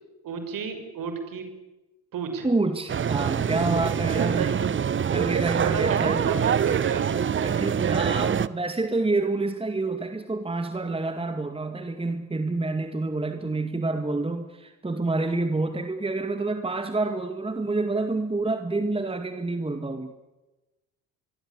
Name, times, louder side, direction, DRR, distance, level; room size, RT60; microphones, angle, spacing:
voice 1, 0.2-1.5 2.1-2.5 4.1-4.5 5.6-7.2, right 6 dB, 55° right, 8 dB, 6.0 m, -32 dB
voice 2, 2.4-4.4 5.1-6.2 7.4-20.1, right 2 dB, 15° right, 7 dB, 2.1 m, -28 dB
sound 1, 2.9-8.5, right 8 dB, 30° right, 0.9 m, -25 dB
24.5 x 23.0 x 8.5 m, 1.1 s
hypercardioid pair, 60°, 41 cm